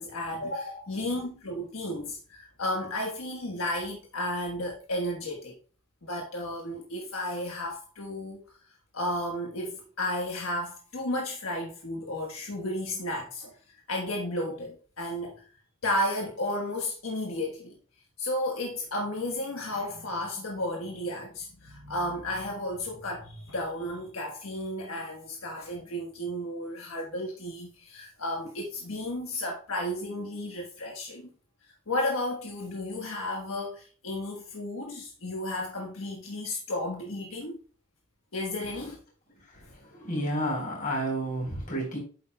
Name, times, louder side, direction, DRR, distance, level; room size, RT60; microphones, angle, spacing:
voice 1, 0.0-5.6 6.0-8.4 8.9-13.6 13.9-15.4 15.8-17.8 18.2-31.3 31.6-37.6 38.3-39.0, left 1 dB, 75° left, 1.3 m, -33 dB
voice 2, 39.5-42.0, right 1 dB, 40° left, 3.9 m, -31 dB
9.3 x 7.6 x 2.2 m
head